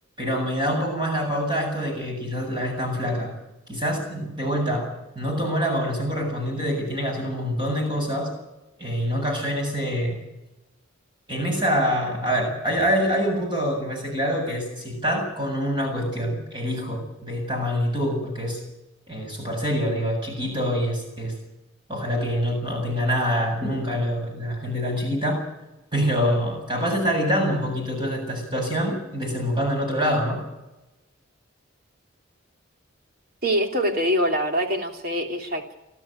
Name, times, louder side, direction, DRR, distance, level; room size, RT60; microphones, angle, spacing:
voice 1, 0.2-3.3 3.7-4.9 5.1-8.3 8.8-10.2 11.3-18.6 19.1-21.3 21.9-25.4 25.9-30.4, equal, 25° right, 2 dB, 7.9 m, -25 dB
voice 2, 33.4-35.7, equal, 45° right, 4 dB, 2.9 m, -24 dB
29.5 x 12.5 x 9.2 m, 1.0 s
head